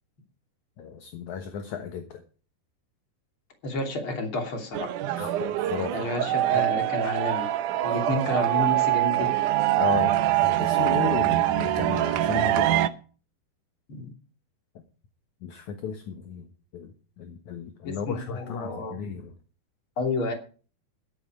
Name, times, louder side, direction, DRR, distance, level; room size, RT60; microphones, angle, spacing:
voice 1, 0.8-2.2 5.2-6.0 7.9-8.0 9.8-12.7 15.4-16.5 16.7-19.3, left 7 dB, 60° left, 6 dB, 2.2 m, -34 dB
voice 2, 3.6-4.9 5.9-7.5 7.8-9.5 13.9-14.1 17.8-19.1 20.0-20.3, left 2 dB, 35° left, 4 dB, 3.3 m, -30 dB
sound 1, 4.7-12.9, right 14 dB, 75° right, 1.9 m, -24 dB
13.5 x 11.5 x 4.9 m, 0.38 s
omnidirectional pair, 4.6 m